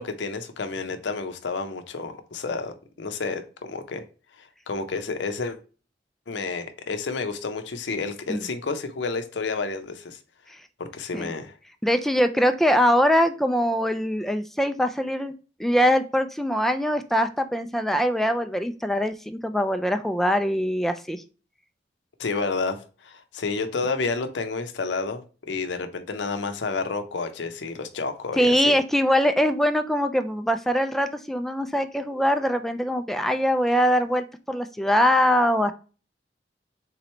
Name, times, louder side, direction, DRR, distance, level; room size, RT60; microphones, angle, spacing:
voice 1, 0.0-4.0 4.4-5.6 6.3-10.2 10.8-11.6 22.2-28.8, left 4 dB, 75° left, 0.6 m, -30 dB
voice 2, 11.8-15.3 15.6-21.2 28.4-35.7, equal, ahead, 0.3 m, -22 dB
3.8 x 3.0 x 4.3 m
head